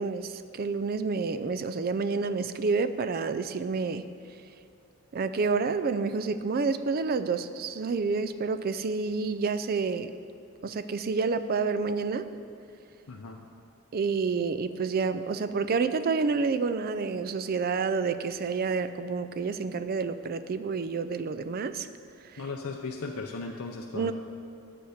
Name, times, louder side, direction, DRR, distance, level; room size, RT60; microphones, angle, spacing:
voice 1, 0.0-4.1 5.1-10.1 10.6-12.3 13.9-21.9 22.3-22.4 23.9-24.1, right 4 dB, 45° right, 11 dB, 0.4 m, -29 dB
voice 2, 13.1-13.4 22.4-24.1, left 3 dB, 75° left, 1 dB, 0.6 m, -37 dB
10.5 x 7.9 x 5.0 m, 2.4 s
head